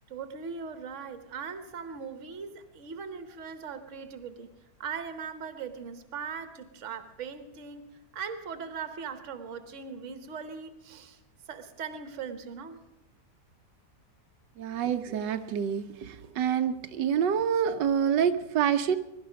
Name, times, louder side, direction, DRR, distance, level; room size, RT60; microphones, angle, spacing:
voice 1, 0.1-4.5 4.8-7.9 8.1-11.2 11.5-12.8, right 6 dB, 50° right, 1.4 m, -39 dB
voice 2, 14.6-19.0, right 8 dB, 85° right, 1.4 m, -27 dB
21.5 x 12.0 x 5.1 m
omnidirectional pair, 1.8 m